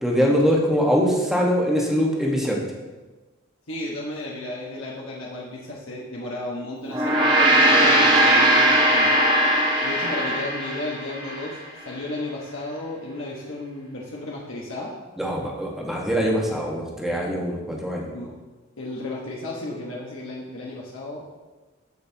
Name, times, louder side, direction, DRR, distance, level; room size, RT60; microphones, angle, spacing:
voice 1, 0.0-2.6 15.2-18.1, equal, ahead, -3 dB, 1.4 m, -22 dB
voice 2, 3.7-9.1 9.8-14.9 18.1-18.3 18.8-21.3, left 2 dB, 80° left, -4 dB, 1.3 m, -33 dB
Gong, 6.9-11.5, right 1 dB, 25° right, 1.4 m, -19 dB
15.5 x 5.4 x 2.8 m, 1.2 s
head